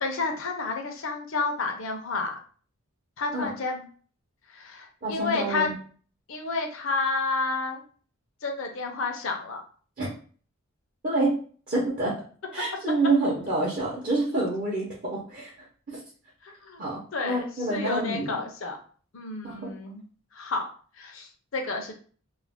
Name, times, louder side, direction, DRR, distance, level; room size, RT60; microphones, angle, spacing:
voice 1, 0.0-2.4 3.2-3.8 4.5-5.7 6.3-7.8 8.4-9.6 16.4-16.8 17.1-18.8 19.1-20.0 20.3-20.7 20.9-21.9, left 3 dB, 65° left, 3 dB, 0.5 m, -30 dB
voice 2, 5.0-5.7 10.0-10.1 11.0-11.4 11.7-12.2 12.5-15.5 15.9-16.0 16.8-18.3 19.4-19.7, right 2 dB, 40° right, -5 dB, 0.6 m, -27 dB
2.4 x 2.1 x 3.4 m, 0.42 s
head